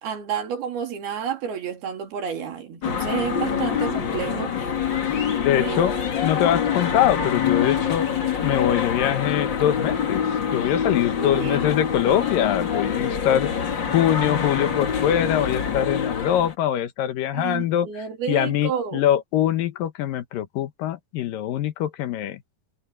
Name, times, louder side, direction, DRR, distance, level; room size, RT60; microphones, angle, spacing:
voice 1, 0.0-4.7 5.6-5.8 11.2-11.6 13.0-13.2 17.3-19.0, right 7 dB, 70° right, 4.6 m, -30 dB
sound 1, 2.8-16.5, left 7 dB, 45° left, 1.6 m, -25 dB
voice 2, 5.4-6.0 6.2-8.1 8.4-22.4, left 11 dB, 70° left, 2.6 m, -23 dB
omnidirectional pair, 4.6 m